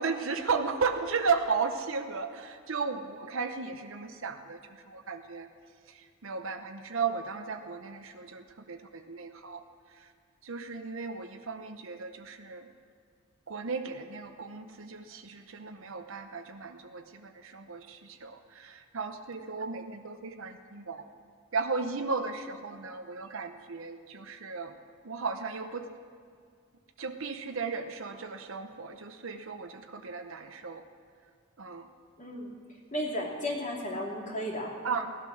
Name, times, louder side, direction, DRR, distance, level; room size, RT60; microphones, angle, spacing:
voice 1, 0.0-5.5 5.9-9.6 9.9-10.1 10.4-12.7 13.5-21.0 21.5-24.8 25.0-25.9 27.0-30.8 31.6-31.9 34.8-35.1, right 5 dB, 65° right, 7 dB, 0.8 m, -35 dB
voice 2, 32.2-32.5 32.9-34.7, left 1 dB, 35° left, -3 dB, 2.7 m, -34 dB
17.5 x 12.0 x 6.3 m, 2.1 s
head